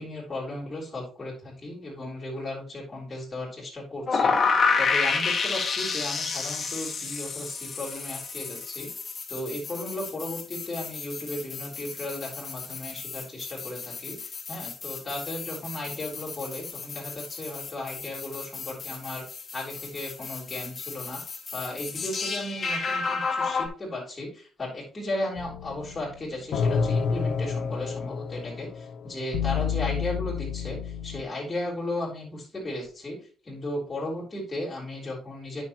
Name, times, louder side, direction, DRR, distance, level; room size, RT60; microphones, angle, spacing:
voice 1, 0.0-8.9 9.3-19.2 19.5-21.2 21.5-33.2 33.4-35.6, left 1 dB, 20° left, -6 dB, 3.8 m, -35 dB
sound 1, 4.1-23.7, left 4 dB, 35° left, 1.3 m, -31 dB
sound 2, 25.4-31.2, left 6 dB, 90° left, 0.6 m, -29 dB
9.3 x 6.3 x 3.0 m, 0.38 s
cardioid pair, 160°, 0 cm